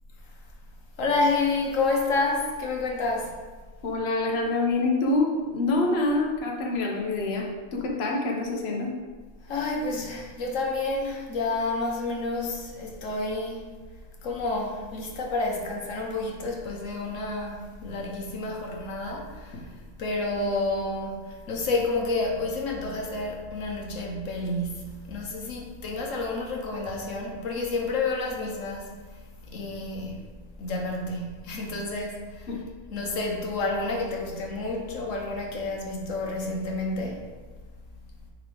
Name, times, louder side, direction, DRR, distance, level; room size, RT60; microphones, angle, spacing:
voice 1, 1.0-3.4 9.4-13.7 14.2-28.9 29.5-30.3 30.6-32.5 32.9-37.2, left 3 dB, 80° left, 0 dB, 1.3 m, -29 dB
voice 2, 3.8-7.5 7.7-8.9 32.5-32.6, left 2 dB, 55° left, -1 dB, 1.1 m, -26 dB
9.1 x 3.5 x 3.8 m, 1.4 s
omnidirectional pair, 1.3 m